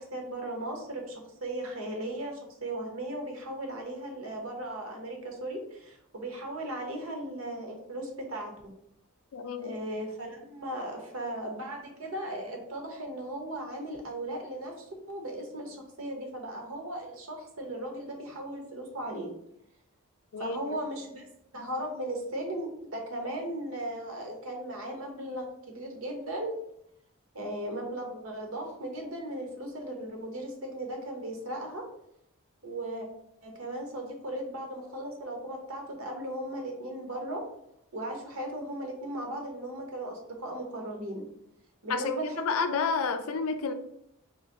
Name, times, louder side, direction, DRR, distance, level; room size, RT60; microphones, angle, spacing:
voice 1, 0.0-8.7 9.6-19.3 20.4-21.3 21.5-26.6 27.3-31.8 32.6-33.1 33.4-37.4 37.9-41.3 41.8-42.8 43.2-43.3, right 1 dB, 70° right, 2 dB, 0.9 m, -37 dB
voice 2, 9.3-9.7 20.3-20.8 41.9-43.7, left 5 dB, 75° left, 9 dB, 0.4 m, -30 dB
3.8 x 3.0 x 2.8 m, 0.76 s
head